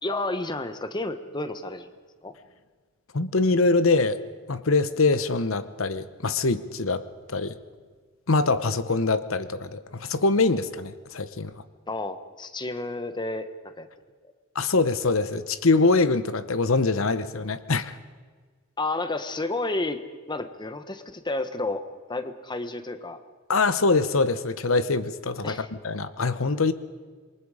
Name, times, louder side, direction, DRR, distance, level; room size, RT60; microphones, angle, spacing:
voice 1, 0.0-1.9 2.2-2.3 11.9-13.9 18.8-20.0 20.3-21.8 22.1-23.2 25.4-25.7, left 2 dB, 20° left, 10 dB, 1.2 m, -31 dB
voice 2, 3.1-4.2 4.5-7.0 7.3-7.6 8.3-11.5 14.5-17.9 23.5-26.7, left 3 dB, 70° left, 13 dB, 1.0 m, -23 dB
27.5 x 23.0 x 5.0 m, 1.5 s
head